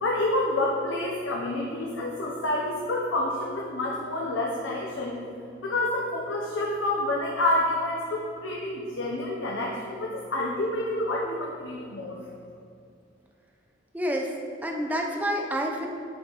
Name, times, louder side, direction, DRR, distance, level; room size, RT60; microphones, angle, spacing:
voice 1, 0.0-5.1 5.6-12.2, left 1 dB, 85° left, -2 dB, 0.8 m, -28 dB
voice 2, 13.9-14.4 14.6-15.9, equal, 10° right, 1 dB, 0.7 m, -28 dB
10.0 x 5.5 x 3.1 m, 2.4 s
head